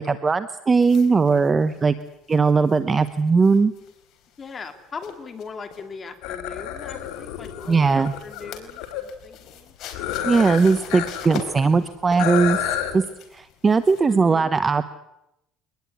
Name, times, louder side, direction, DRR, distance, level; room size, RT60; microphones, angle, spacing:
voice 1, 0.0-1.9 2.3-3.7 7.7-8.1 10.2-12.6 12.9-13.0 13.3-14.8, right 4 dB, 20° right, 12 dB, 0.9 m, -19 dB
sound 1, 0.7-14.2, left 7 dB, 50° left, 4.5 m, -44 dB
voice 2, 4.4-9.8 10.2-10.7 14.1-14.5, left 5 dB, 25° left, 6 dB, 2.9 m, -39 dB
sound 2, 6.2-9.0 9.9-11.3 11.6-11.7 12.2-13.0, left 10 dB, 75° left, 3.6 m, -29 dB
24.0 x 20.0 x 9.5 m, 0.85 s
cardioid pair, 155°, 0 cm